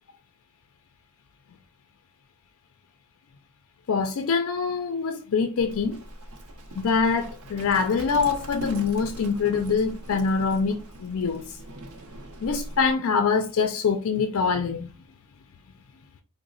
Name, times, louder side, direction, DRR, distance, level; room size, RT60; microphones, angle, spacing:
voice 1, 3.9-6.0 6.8-11.6 12.4-14.9, left 5 dB, 80° left, 0.4 m, -24 dB
Livestock farm animals working animals, 5.6-12.9, right 1 dB, 85° right, 0.6 m, -41 dB
3.9 x 2.0 x 3.7 m
head